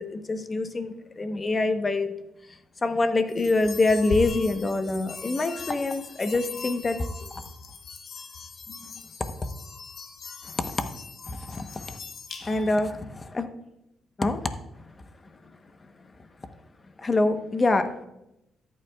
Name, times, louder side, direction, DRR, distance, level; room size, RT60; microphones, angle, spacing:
voice 1, 0.0-2.2 2.5-7.0 10.4-10.9 11.3-12.0 12.4-13.5 14.2-14.5 14.8-14.9 17.0-17.9, left 2 dB, 30° left, 8 dB, 0.9 m, -26 dB
sound 1, 3.3-12.8, left 4 dB, 55° left, 1.3 m, -40 dB
13.5 x 8.4 x 2.3 m, 0.85 s
cardioid pair, 90°, 0 cm